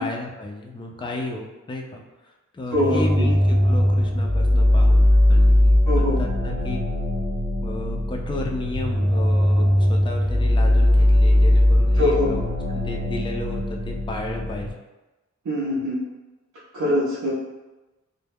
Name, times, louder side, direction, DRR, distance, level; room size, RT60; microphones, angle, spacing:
voice 1, 0.0-6.9 7.6-12.5 12.7-14.7, left 2 dB, 15° left, 1 dB, 0.3 m, -33 dB
sound 1, 2.7-14.7, left 1 dB, 15° right, 0.8 m, -19 dB
voice 2, 2.7-3.2 5.9-6.2 12.0-12.4 15.4-16.0 16.7-17.3, left 1 dB, 70° right, -9 dB, 0.6 m, -23 dB
2.2 x 2.1 x 3.4 m, 1.1 s
wide cardioid pair, 65°, 30 cm